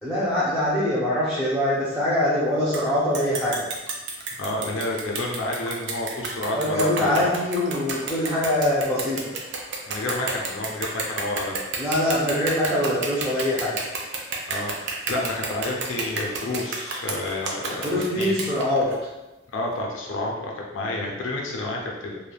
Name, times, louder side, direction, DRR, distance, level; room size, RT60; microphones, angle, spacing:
voice 1, 0.0-3.6 6.5-9.3 11.8-13.7 17.8-18.9, left 1 dB, 5° right, -10 dB, 0.6 m, -23 dB
sound 1, 2.7-2.8 3.1-19.0, right 4 dB, 65° right, 0.4 m, -31 dB
voice 2, 4.4-7.3 9.9-11.6 14.5-18.4 19.5-22.3, left 2 dB, 75° left, -1 dB, 0.5 m, -30 dB
3.2 x 2.2 x 2.2 m, 1.0 s
head